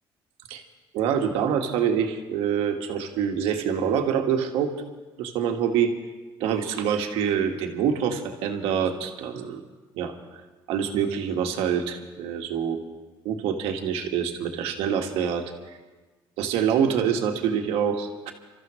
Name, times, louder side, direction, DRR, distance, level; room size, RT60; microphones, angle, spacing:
voice 1, 0.9-4.7 5.2-5.9 6.4-9.6 9.9-10.1 10.7-12.8 13.2-15.8 16.4-18.3, right 8 dB, 85° right, 3 dB, 1.6 m, -26 dB
29.0 x 13.5 x 3.1 m, 1.2 s
cardioid pair, 115°, 10 cm